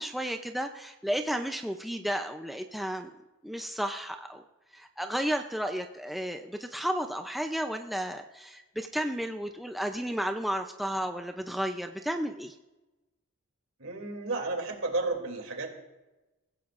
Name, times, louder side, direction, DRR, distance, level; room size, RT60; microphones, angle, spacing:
voice 1, 0.0-3.1 3.4-4.4 4.7-12.6, equal, ahead, 4 dB, 0.5 m, -33 dB
voice 2, 13.8-15.7, right 3 dB, 75° right, 3 dB, 2.9 m, -32 dB
23.5 x 15.0 x 2.5 m, 1.1 s
head